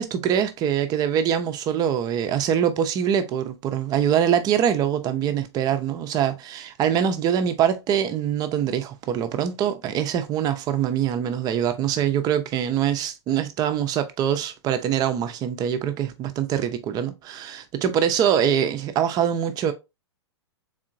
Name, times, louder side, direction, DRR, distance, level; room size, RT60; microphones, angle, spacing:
voice 1, 0.0-19.7, right 9 dB, 25° right, 0.6 m, -24 dB
3.6 x 3.6 x 2.5 m
figure-of-eight pair, 105°, 15 cm